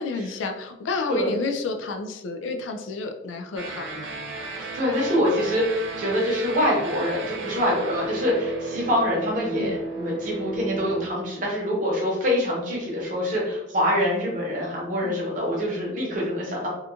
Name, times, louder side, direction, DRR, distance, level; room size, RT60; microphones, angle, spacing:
voice 1, 0.0-4.1 9.5-9.8 15.0-15.4, left 3 dB, 85° left, 5 dB, 0.4 m, -30 dB
sound 1, 3.6-11.1, right 3 dB, 85° right, 0.4 m, -34 dB
voice 2, 4.5-16.7, equal, 45° right, -4 dB, 0.9 m, -25 dB
2.9 x 2.3 x 2.4 m, 0.95 s
head